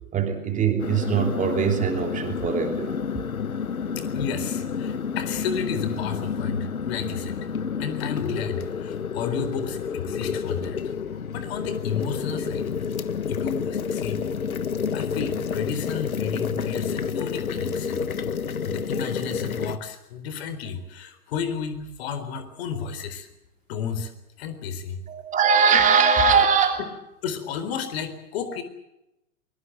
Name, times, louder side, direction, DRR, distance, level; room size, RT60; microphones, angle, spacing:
voice 1, 0.1-3.0 25.1-26.8, right 6 dB, 15° right, 5 dB, 3.0 m, -21 dB
sound 1, 0.8-19.8, left 6 dB, 65° left, 1.5 m, -29 dB
voice 2, 4.1-7.4 7.8-10.8 11.3-12.7 13.3-14.2 14.9-18.0 18.6-23.3 23.7-24.1 24.4-25.0 27.2-28.6, left 6 dB, 40° left, 11 dB, 4.1 m, -32 dB
24.0 x 22.5 x 7.8 m, 0.88 s
figure-of-eight pair, 115°, 46 cm